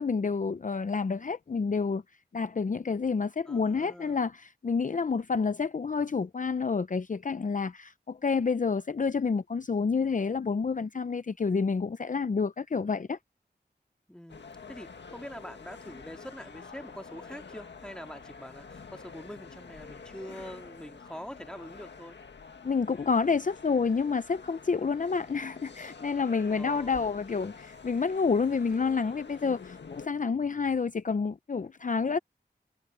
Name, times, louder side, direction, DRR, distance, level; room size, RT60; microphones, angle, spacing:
voice 1, 0.0-2.0 2.3-13.2 22.6-32.2, left 5 dB, 45° left, 0.6 m, -29 dB
voice 2, 3.5-4.2 14.1-22.2 26.5-27.1, equal, 5° left, 2.1 m, -44 dB
sound 1, 14.3-30.1, left 5 dB, 80° left, 1.8 m, -48 dB
wide cardioid pair, 55°, 18 cm